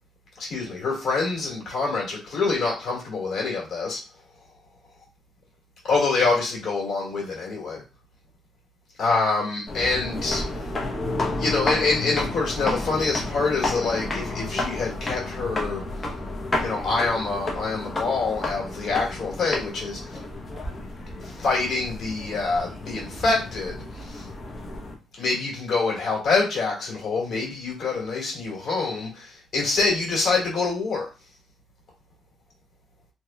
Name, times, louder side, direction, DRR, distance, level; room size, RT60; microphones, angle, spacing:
voice 1, 0.4-4.0 5.8-7.8 9.0-10.6 11.4-15.8 16.6-20.2 21.2-24.3 25.2-31.1, left 3 dB, 60° left, -3 dB, 1.8 m, -26 dB
sound 1, 9.7-24.9, left 2 dB, 30° left, 0.9 m, -31 dB
3.1 x 2.9 x 2.3 m, 0.31 s
cardioid pair, 90°, 0 cm